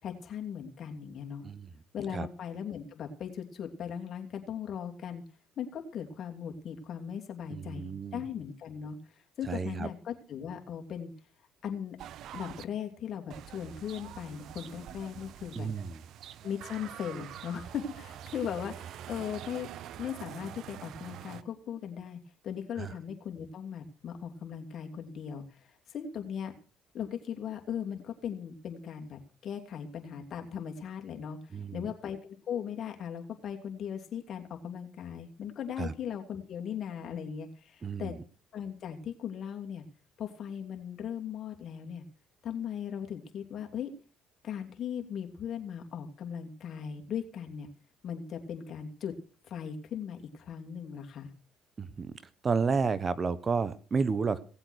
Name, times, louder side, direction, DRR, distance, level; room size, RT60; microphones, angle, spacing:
voice 1, 0.0-1.4 1.9-5.2 5.6-9.0 9.4-11.1 11.6-12.0 12.3-15.7 16.4-19.7 20.0-26.5 26.9-31.4 31.7-38.1 38.5-39.8 40.2-42.0 42.4-43.9 44.4-47.7 48.0-49.1 49.5-51.3, left 8 dB, 55° left, 3 dB, 2.9 m, -38 dB
voice 2, 7.5-8.2 9.4-9.9 15.5-16.0 22.8-22.9 31.5-31.9 35.8-35.9 37.8-38.1 51.8-52.1 52.4-54.4, right 5 dB, 40° right, 16 dB, 1.1 m, -31 dB
sound 1, 12.0-12.6 13.3-21.4, right 11 dB, 65° right, 0.7 m, -45 dB
17.5 x 7.9 x 6.4 m, 0.40 s
supercardioid pair, 65°, 0 cm